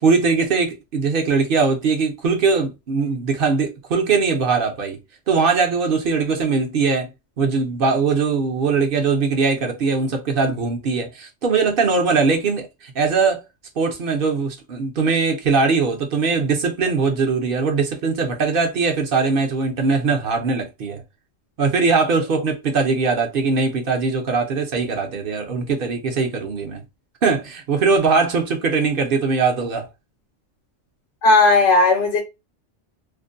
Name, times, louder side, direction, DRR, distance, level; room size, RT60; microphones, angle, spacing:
voice 1, 0.0-5.0 5.3-7.1 7.4-13.4 13.8-21.0 21.6-26.8 27.2-29.9, right 4 dB, 55° right, 0.7 m, -21 dB
voice 2, 31.2-32.2, left 3 dB, 80° left, 1.0 m, -15 dB
2.5 x 2.1 x 2.5 m
omnidirectional pair, 1.2 m